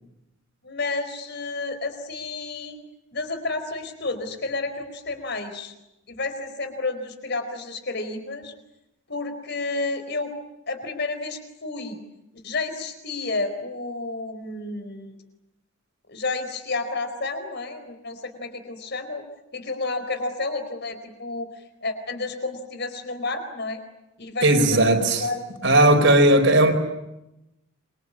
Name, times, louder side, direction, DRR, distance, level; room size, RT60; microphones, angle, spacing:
voice 1, 0.6-2.8 3.1-5.7 6.1-8.5 9.1-10.3 10.7-12.0 12.4-15.2 16.1-19.2 19.5-23.8 24.2-26.0, left 3 dB, 55° left, 4.4 m, -31 dB
voice 2, 24.4-25.2 25.6-26.7, right 1 dB, 60° right, 4.6 m, -16 dB
27.5 x 24.5 x 8.6 m
head